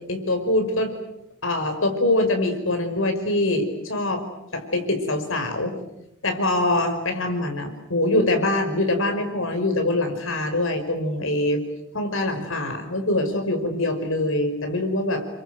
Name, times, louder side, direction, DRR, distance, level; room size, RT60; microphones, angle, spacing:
voice 1, 0.1-0.9 1.4-4.2 4.5-5.8 6.2-11.6 11.9-15.2, left 1 dB, 75° left, 6 dB, 5.5 m, -24 dB
29.5 x 24.5 x 7.9 m, 0.88 s
head